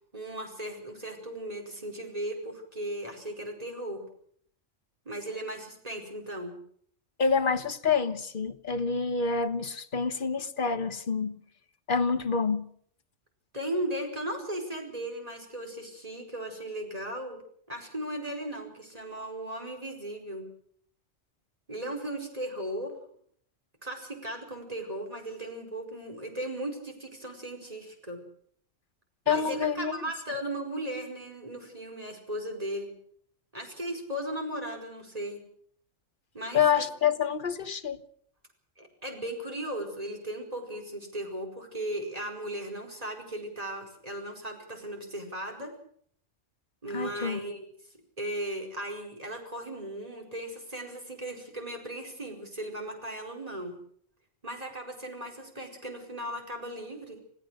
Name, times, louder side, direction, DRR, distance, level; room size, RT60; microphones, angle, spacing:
voice 1, 0.1-4.0 5.0-6.6 13.5-17.4 17.7-20.5 21.7-22.9 23.8-28.2 29.2-32.9 33.5-35.4 36.3-36.9 38.8-45.7 46.8-47.7 48.2-53.7 54.4-57.2, right 1 dB, 30° right, 5.0 m, -37 dB
voice 2, 7.2-11.4 11.9-12.7 29.3-30.0 36.5-38.0 46.9-47.4, left 6 dB, 40° left, 1.3 m, -27 dB
27.0 x 17.0 x 6.4 m
omnidirectional pair, 1.3 m